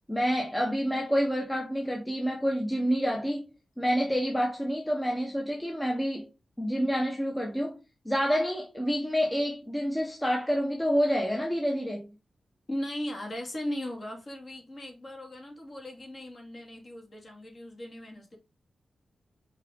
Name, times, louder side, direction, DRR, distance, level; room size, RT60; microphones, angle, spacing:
voice 1, 0.1-3.5 3.8-6.3 6.6-7.8 8.0-12.1, equal, 10° left, 1.2 m, -28 dB
voice 2, 12.7-18.4, left 1 dB, 30° left, 2.3 m, -38 dB
5.4 x 5.1 x 3.7 m
wide cardioid pair, 170°, 0 cm